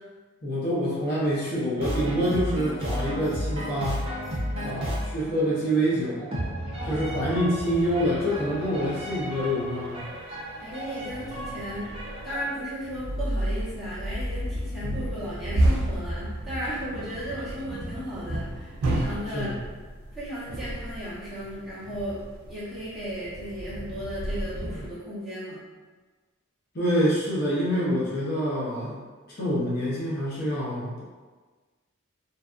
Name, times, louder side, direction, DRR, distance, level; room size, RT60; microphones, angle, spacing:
voice 1, 0.4-4.1 4.6-6.3 6.8-10.1 14.8-15.0 19.3-19.6 26.7-29.0 29.3-31.0, equal, 50° left, -8 dB, 0.6 m, -26 dB
sound 1, 1.8-12.5, equal, 30° right, 0.5 m, -33 dB
voice 2, 4.4-4.8 6.7-7.4 10.6-11.9 12.2-19.5 20.1-25.6, equal, ahead, -13 dB, 0.9 m, -35 dB
sound 2, 7.7-7.8 8.1-8.2 8.8-8.9 9.2-9.3 10.3-24.9, right 1 dB, 80° right, 0.4 m, -31 dB
2.6 x 2.3 x 2.3 m, 1.4 s
head